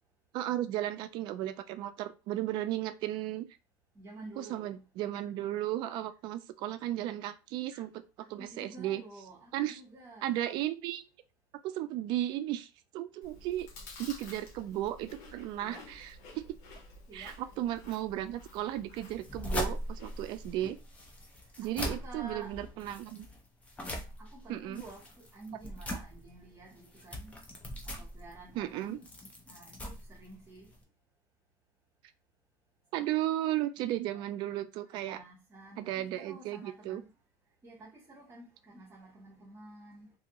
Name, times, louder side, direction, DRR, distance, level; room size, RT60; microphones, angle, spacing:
voice 1, 0.3-3.5 4.4-7.9 8.3-9.0 9.5-9.8 10.2-11.0 11.6-12.7 12.9-13.7 14.0-16.6 17.1-20.8 21.6-23.3 24.5-24.8 28.6-29.0 32.9-35.2 35.8-37.0, right 13 dB, 55° right, 0.4 m, -35 dB
voice 2, 3.9-4.9 7.7-7.8 8.2-10.4 15.6-15.9 17.1-17.4 21.6-22.5 24.2-27.3 27.8-29.1 29.4-30.8 33.0-33.1 33.8-34.3 34.9-37.1 37.6-40.1, right 2 dB, 30° right, 1.1 m, -51 dB
Chewing mastication, 13.2-20.5, left 2 dB, 85° left, 0.9 m, -51 dB
sound 1, 19.1-30.8, equal, 15° left, 0.5 m, -41 dB
2.7 x 2.5 x 2.8 m
cardioid pair, 155°, 9 cm